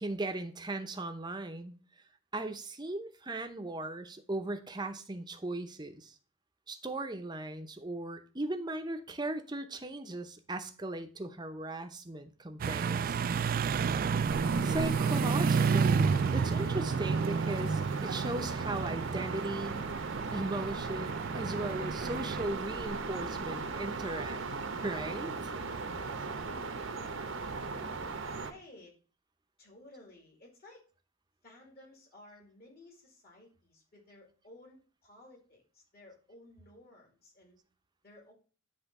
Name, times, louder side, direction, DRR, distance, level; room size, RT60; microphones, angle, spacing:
voice 1, 0.0-1.7 2.3-6.1 6.7-13.1 14.6-19.9 20.3-24.4 24.8-25.3, right 2 dB, 20° right, 7 dB, 0.7 m, -38 dB
sound 1, 12.6-22.4, right 5 dB, 45° right, 0.3 m, -31 dB
sound 2, 14.3-28.5, right 4 dB, 70° right, 0.9 m, -38 dB
voice 2, 28.1-28.9 29.6-30.8 31.4-37.6 38.0-38.3, left 1 dB, 50° left, 1 dB, 2.4 m, -56 dB
10.0 x 3.4 x 5.3 m, 0.38 s
head